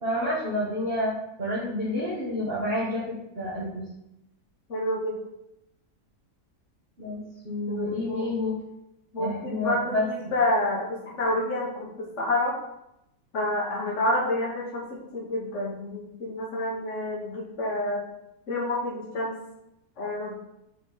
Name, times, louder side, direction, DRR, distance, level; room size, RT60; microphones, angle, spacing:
voice 1, 0.0-1.1 1.4-3.8 7.0-7.2 7.4-8.6 9.2-10.1, left 1 dB, 35° right, -8 dB, 1.6 m, -29 dB
voice 2, 4.7-5.2 7.7-8.3 9.1-12.5 13.3-18.0 18.5-19.4 20.0-20.4, left 1 dB, 50° left, -5 dB, 1.4 m, -28 dB
5.8 x 3.9 x 5.4 m, 0.85 s
omnidirectional pair, 1.8 m